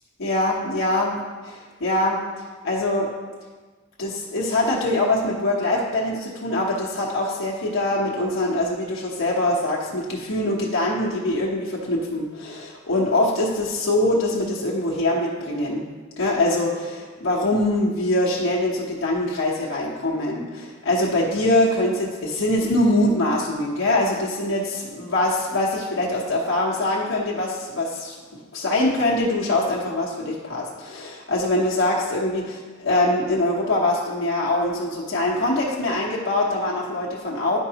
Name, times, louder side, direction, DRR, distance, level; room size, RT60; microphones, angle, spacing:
voice 1, 0.2-1.2 1.8-2.2 2.6-3.1 4.0-15.8 16.2-28.2 28.5-37.6, left 1 dB, 80° left, -5 dB, 1.1 m, -23 dB
11.0 x 4.6 x 2.9 m, 1.4 s
head